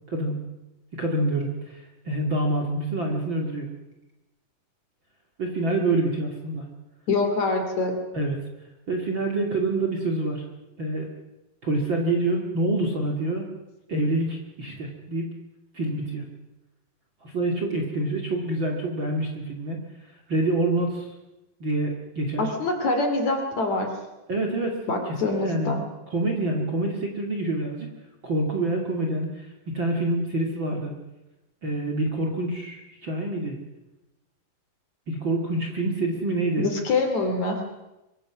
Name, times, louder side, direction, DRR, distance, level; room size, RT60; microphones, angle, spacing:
voice 1, 1.0-3.7 5.4-6.7 8.1-8.4 8.9-10.4 10.8-11.1 11.6-13.5 13.9-15.3 15.7-16.2 17.2-19.8 20.3-21.1 21.6-22.5 24.3-24.8 25.1-25.8 26.1-27.9 28.2-30.9 31.6-33.6 35.1-36.7, right 2 dB, 35° right, 1 dB, 2.6 m, -26 dB
voice 2, 7.1-7.9 22.4-23.9 24.9-25.8 36.6-37.6, left 3 dB, 45° left, 4 dB, 3.6 m, -25 dB
25.0 x 23.0 x 6.2 m, 0.97 s
omnidirectional pair, 4.7 m